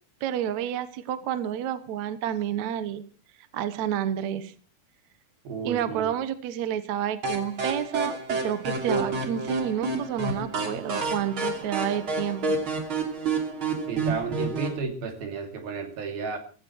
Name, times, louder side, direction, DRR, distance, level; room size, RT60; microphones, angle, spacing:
voice 1, 0.2-3.0 3.5-4.5 5.6-12.5, right 10 dB, 65° right, 12 dB, 2.1 m, -29 dB
voice 2, 5.4-6.1 13.9-16.4, right 5 dB, 80° right, 5 dB, 4.5 m, -32 dB
sound 1, 7.2-14.8, right 3 dB, 35° right, 3.3 m, -29 dB
16.0 x 15.5 x 4.6 m, 0.39 s
omnidirectional pair, 4.2 m